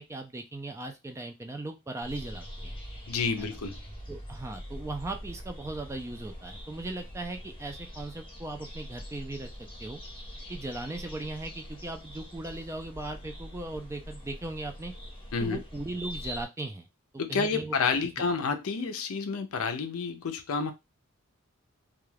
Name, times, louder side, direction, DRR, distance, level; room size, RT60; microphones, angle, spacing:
voice 1, 0.0-2.8 3.4-3.6 4.1-9.5 9.8-10.0 10.5-14.9 15.4-16.9 17.3-17.8, right 2 dB, 15° right, 5 dB, 0.3 m, -38 dB
sound 1, 2.0-16.4, equal, 25° left, 0.9 m, -43 dB
voice 2, 3.1-3.8 15.3-15.6 17.2-20.7, left 5 dB, 70° left, 7 dB, 0.5 m, -29 dB
2.3 x 2.3 x 3.2 m, 0.23 s
head